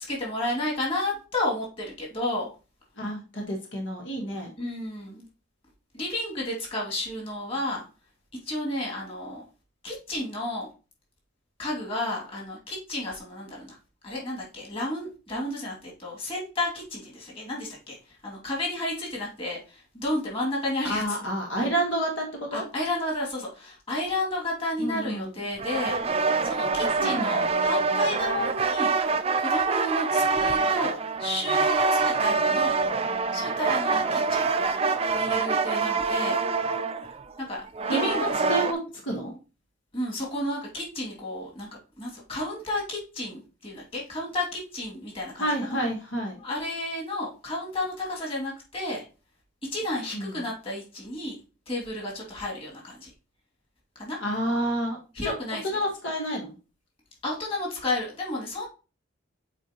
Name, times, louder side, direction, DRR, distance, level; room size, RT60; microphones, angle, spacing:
voice 1, 0.1-2.5 4.6-5.3 5.9-7.9 8.5-9.4 9.8-10.7 11.6-13.8 14.0-21.0 22.5-26.0 26.4-28.9 29.4-32.8 33.3-34.5 35.1-36.4 37.5-38.5 39.9-41.7 42.0-45.8 46.4-49.0 49.7-51.4 51.7-53.1 54.0-54.2 55.1-55.6 57.2-58.7, left 1 dB, 30° left, -3 dB, 2.5 m, -32 dB
voice 2, 3.0-4.5 20.8-22.6 24.8-25.3 27.0-27.5 37.8-38.8 39.0-39.3 45.4-46.4 50.1-50.4 54.2-55.0 55.2-55.3 55.6-56.5, right 1 dB, 75° left, 1 dB, 1.5 m, -29 dB
sound 1, 25.6-38.7, right 4 dB, 30° right, 0.5 m, -25 dB
8.0 x 4.3 x 2.9 m, 0.34 s
head